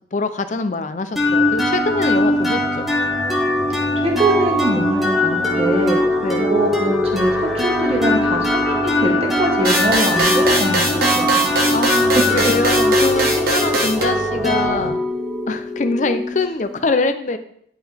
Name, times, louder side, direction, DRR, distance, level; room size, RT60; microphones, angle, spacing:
voice 1, 0.1-2.9 6.2-6.5 10.9-11.3 11.7-15.0 15.5-17.4, left 3 dB, 40° left, 10 dB, 0.5 m, -23 dB
sound 1, 1.2-16.8, left 1 dB, ahead, 1.1 m, -20 dB
voice 2, 4.0-6.0 6.5-7.3 7.6-11.4, right 1 dB, 35° right, 0 dB, 1.3 m, -22 dB
sound 2, 9.6-14.0, right 1 dB, 55° right, 1.3 m, -21 dB
10.5 x 4.0 x 3.4 m, 0.68 s
head